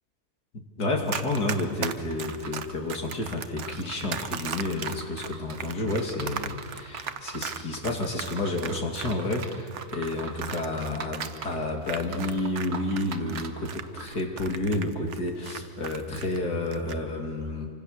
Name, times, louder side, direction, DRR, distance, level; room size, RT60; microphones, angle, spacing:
voice 1, 0.5-17.7, left 2 dB, 80° left, 2 dB, 3.3 m, -30 dB
Run, 1.1-12.7 13.0-16.4 16.7-17.0, right 8 dB, 55° right, 1.0 m, -37 dB
sound 1, 1.3-14.2, right 5 dB, 70° right, 1.9 m, -42 dB
27.0 x 24.5 x 6.7 m, 2.1 s
omnidirectional pair, 1.7 m